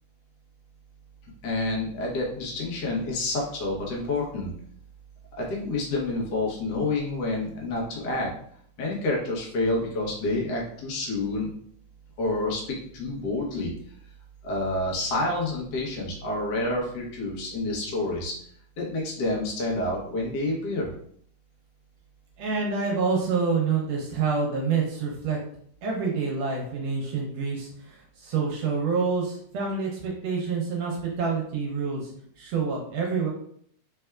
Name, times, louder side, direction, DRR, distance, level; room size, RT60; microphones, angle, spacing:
voice 1, 1.4-4.5 5.4-8.3 8.8-11.5 12.2-12.6 12.9-13.7 14.4-18.3 18.8-20.9, left 2 dB, 80° left, -3 dB, 0.9 m, -28 dB
voice 2, 22.4-25.4 25.8-32.1 32.4-33.3, right 5 dB, 75° right, -1 dB, 1.7 m, -27 dB
4.2 x 3.4 x 2.3 m, 0.64 s
omnidirectional pair, 3.3 m